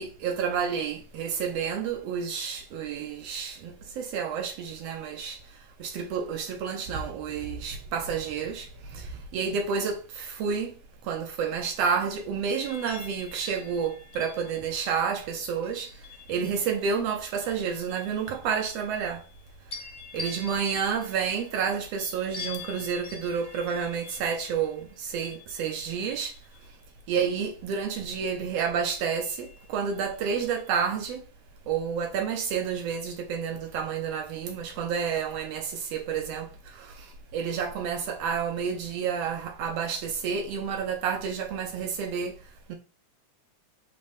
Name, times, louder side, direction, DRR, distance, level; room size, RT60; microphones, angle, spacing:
voice 1, 0.0-19.3 20.1-26.4 27.1-31.3 31.7-42.4 42.7-42.8, right 6 dB, 75° right, 1.5 m, -30 dB
sound 1, 12.5-16.9 17.4-19.3 19.7-26.7 28.6-30.0 30.4-30.7, left 4 dB, 75° left, 0.5 m, -46 dB
4.3 x 3.9 x 3.2 m
omnidirectional pair, 3.4 m